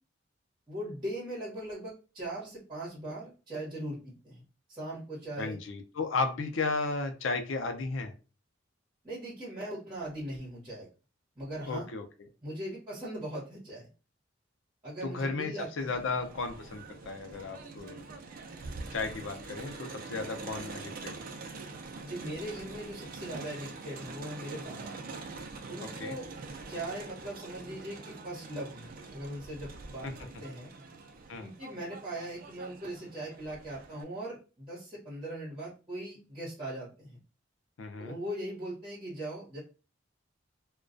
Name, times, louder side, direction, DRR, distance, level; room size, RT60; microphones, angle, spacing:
voice 1, 0.7-4.4 4.7-5.6 9.0-10.9 11.4-11.9 12.4-13.9 14.8-15.9 22.0-24.9 25.7-26.3 26.7-30.7 31.4-37.2 38.0-39.6, right 1 dB, 25° right, -7 dB, 1.0 m, -40 dB
voice 2, 5.4-8.1 11.7-12.0 15.0-18.0 18.9-21.3 25.8-26.2 30.0-30.1 31.3-31.5 37.8-38.1, left 3 dB, 80° left, 6 dB, 0.5 m, -34 dB
Crowd, 15.8-34.0, right 3 dB, 50° right, 0.4 m, -45 dB
2.3 x 2.2 x 2.4 m, 0.33 s
head